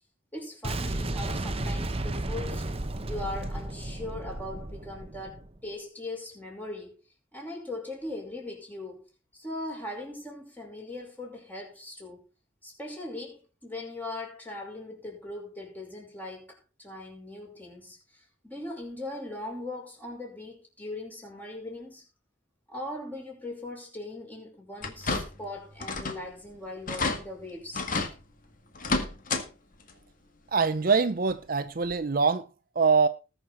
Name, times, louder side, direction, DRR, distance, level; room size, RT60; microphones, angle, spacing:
voice 1, 0.3-2.6 3.0-7.0 7.3-9.0 9.3-12.2 12.6-22.0 22.7-27.9, left 2 dB, 10° left, 5.5 m, -40 dB
Boom, 0.6-5.6, right 1 dB, 30° right, 0.9 m, -33 dB
sound 1, 24.8-25.5 25.8-26.2 26.5-26.6 26.9-27.2 27.7-28.1 28.7-29.5 29.8-29.9 31.3-31.4 31.9-32.0, left 3 dB, 45° left, 1.9 m, -30 dB
voice 2, 30.5-32.5 32.8-33.1, right 5 dB, 45° right, 0.6 m, -24 dB
20.0 x 6.6 x 4.3 m
head